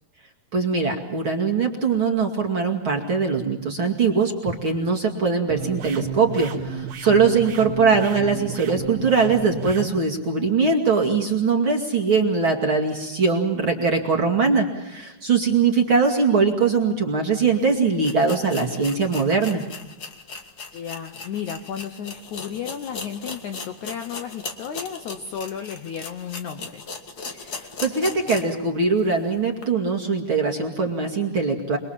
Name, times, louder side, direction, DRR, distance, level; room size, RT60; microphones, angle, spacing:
voice 1, 0.5-19.6 27.5-31.8, right 4 dB, 40° right, 2 dB, 2.4 m, -21 dB
sound 1, 5.5-9.9, right 6 dB, 85° right, 3.9 m, -32 dB
sound 2, 17.5-17.6 18.0-28.6 29.0-29.1 29.6-29.7, left 4 dB, 45° left, 1.2 m, -37 dB
voice 2, 20.7-26.8, left 8 dB, 70° left, 7 dB, 1.9 m, -33 dB
28.0 x 21.5 x 7.3 m, 0.97 s
omnidirectional pair, 4.6 m